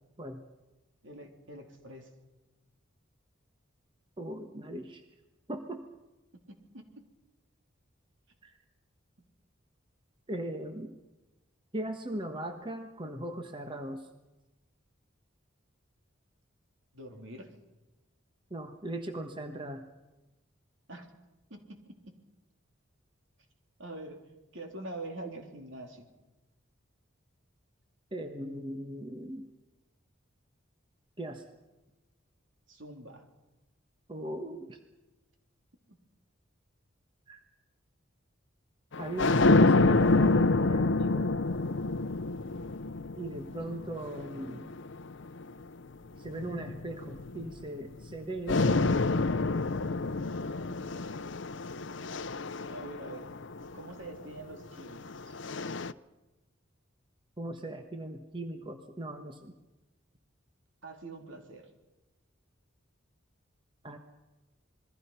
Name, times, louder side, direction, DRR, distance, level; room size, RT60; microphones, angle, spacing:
voice 1, 1.0-2.1 6.7-7.0 16.9-17.5 20.9-21.1 21.5-21.9 23.8-24.2 24.5-26.1 32.7-33.2 52.7-53.3 53.7-55.4 60.8-61.7, right 2 dB, 70° right, 3 dB, 3.6 m, -44 dB
voice 2, 4.2-5.0 5.5-5.8 8.4-8.6 10.3-11.0 11.7-14.1 18.5-19.9 28.1-29.4 31.2-31.5 34.1-34.8 37.3-37.4 39.0-41.3 43.2-44.7 46.2-49.0 57.4-59.5 63.8-64.0, right 1 dB, 25° right, 6 dB, 1.3 m, -39 dB
sound 1, 38.9-45.5 46.3-48.1 48.5-53.8 54.8-55.9, left 3 dB, 60° left, 0.7 m, -28 dB
27.5 x 22.0 x 5.7 m, 1.1 s
head